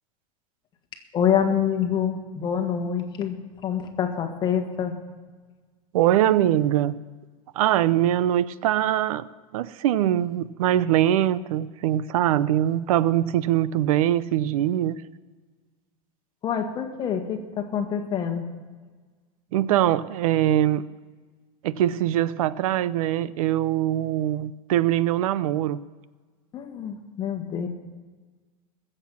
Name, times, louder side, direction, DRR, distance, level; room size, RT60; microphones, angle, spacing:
voice 1, 1.1-5.0 16.4-18.4 26.5-27.7, left 8 dB, 25° left, 5 dB, 1.5 m, -26 dB
voice 2, 5.9-6.9 7.6-9.2 9.5-15.0 19.5-20.8 21.6-25.8, right 12 dB, 85° right, 18 dB, 0.6 m, -22 dB
20.5 x 7.8 x 5.8 m, 1.4 s
supercardioid pair, 155°, 18 cm